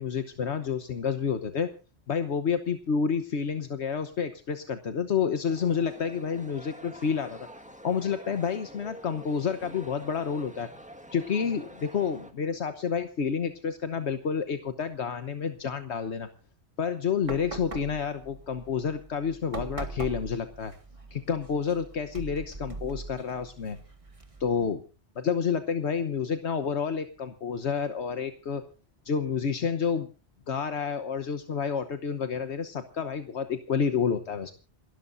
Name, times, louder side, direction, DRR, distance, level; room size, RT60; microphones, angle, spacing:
voice 1, 0.0-1.7 2.1-7.5 7.8-10.7 11.1-16.3 16.8-20.7 21.1-23.8 24.4-24.8 25.1-28.6 29.0-30.1 30.5-34.5, left 6 dB, 75° left, 9 dB, 1.4 m, -29 dB
sound 1, 5.5-12.3, right 1 dB, 5° right, 1.6 m, -47 dB
sound 2, 17.2-24.7, right 2 dB, 30° right, 1.8 m, -42 dB
28.0 x 13.0 x 2.6 m, 0.34 s
omnidirectional pair, 1.1 m